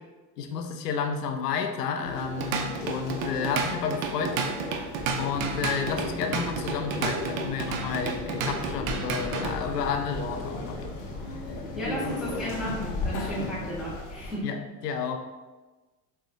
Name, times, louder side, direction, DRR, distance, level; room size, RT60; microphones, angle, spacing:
voice 1, 0.4-4.4 4.6-4.8 5.2-10.9 14.4-15.2, left 6 dB, 75° left, 6 dB, 0.6 m, -31 dB
sound 1, 2.0-14.4, left 2 dB, 55° left, 1.1 m, -36 dB
Drum kit / Drum, 2.2-9.6, right 5 dB, 35° right, 0.4 m, -32 dB
Boat Water vehicle, 5.0-14.0, left 2 dB, 20° left, 0.7 m, -41 dB
voice 2, 11.7-14.5, equal, ahead, -8 dB, 1.2 m, -34 dB
6.2 x 2.6 x 2.7 m, 1.2 s
hypercardioid pair, 80°, 49 cm